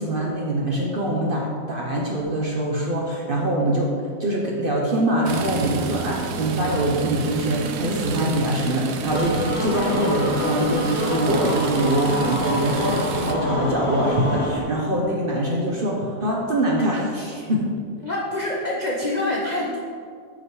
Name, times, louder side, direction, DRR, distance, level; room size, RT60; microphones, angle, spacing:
voice 1, 0.0-3.9 4.2-17.7, right 1 dB, 45° right, -2 dB, 0.7 m, -23 dB
sound 1, 5.3-13.4, right 5 dB, 80° right, 1.2 m, -30 dB
sound 2, 9.1-14.6, left 1 dB, 30° left, 1.7 m, -26 dB
voice 2, 18.0-19.8, left 1 dB, 50° left, -3 dB, 0.5 m, -25 dB
6.3 x 5.0 x 4.6 m, 2.2 s
omnidirectional pair, 1.7 m